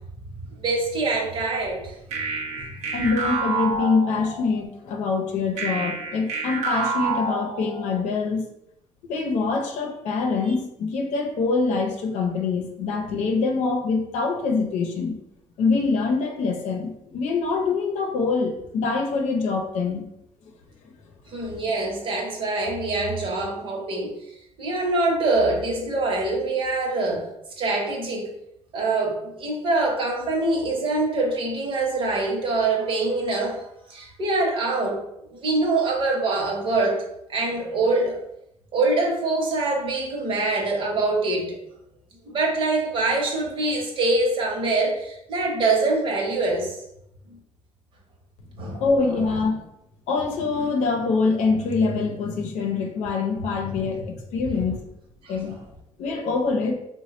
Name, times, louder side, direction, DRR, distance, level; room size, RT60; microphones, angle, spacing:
voice 1, 0.6-2.0 2.5-2.7 10.5-10.6 21.3-24.1 24.6-27.3 27.6-28.3 28.7-35.0 35.3-37.0 37.3-38.2 38.7-41.5 42.3-46.8 47.3-47.4 48.6-48.8 49.1-49.4 53.7-53.9 54.6-54.7 55.2-55.6, right 2 dB, 45° right, 0 dB, 1.0 m, -24 dB
sound 1, 2.1-4.6 5.6-8.1, right 3 dB, 75° right, 0.7 m, -28 dB
voice 2, 2.9-8.4 9.0-15.1 15.6-20.0 48.6-49.6 50.1-54.8 55.3-55.5 56.0-56.7, left 4 dB, 85° left, 2 dB, 0.7 m, -24 dB
3.1 x 2.2 x 4.1 m, 0.80 s
cardioid pair, 135°, 12 cm